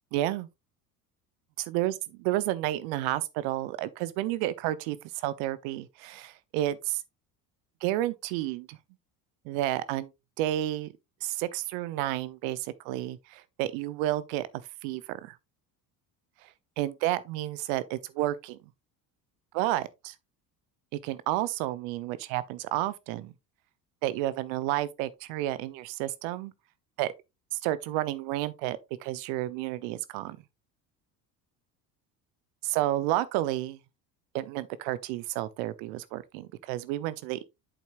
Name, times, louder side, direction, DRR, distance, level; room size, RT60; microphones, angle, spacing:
voice 1, 0.1-0.5 1.6-7.0 7.8-8.8 9.4-10.1 10.4-10.9 11.2-14.5 14.8-15.4 16.4-16.5 16.8-18.6 19.5-20.1 20.9-23.3 24.0-26.5 27.0-27.1 27.5-30.4 32.6-33.8 34.3-37.4, right 15 dB, 70° right, 1.0 m, -31 dB
8.5 x 7.2 x 2.6 m
hypercardioid pair, 65°, 48 cm